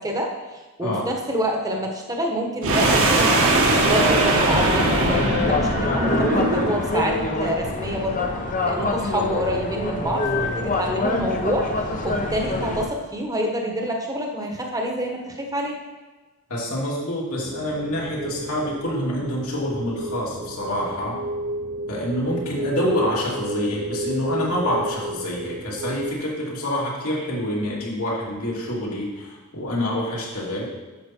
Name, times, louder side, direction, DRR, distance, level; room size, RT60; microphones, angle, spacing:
voice 1, 0.0-8.3 8.6-11.7 12.0-15.7, equal, 15° right, 1 dB, 1.3 m, -27 dB
sound 1, 2.6-6.9, right 2 dB, 65° right, 1.8 m, -20 dB
sound 2, 4.5-12.9, left 2 dB, 35° left, 1.0 m, -25 dB
voice 2, 16.5-21.2 21.9-30.7, equal, 70° left, -4 dB, 2.9 m, -27 dB
sound 3, 17.4-26.1, right 1 dB, 40° right, 0.7 m, -32 dB
11.0 x 7.1 x 4.5 m, 1.3 s
head